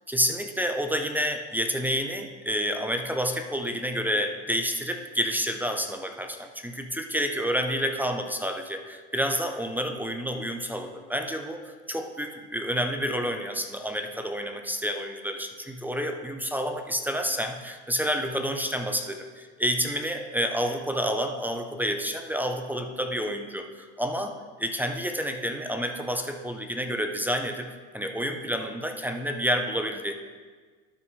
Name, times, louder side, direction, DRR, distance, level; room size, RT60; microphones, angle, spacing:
voice 1, 0.1-27.7 27.9-30.1, equal, 5° right, 5 dB, 0.5 m, -29 dB
12.5 x 5.7 x 3.2 m, 1.5 s
supercardioid pair, 105°, 35 cm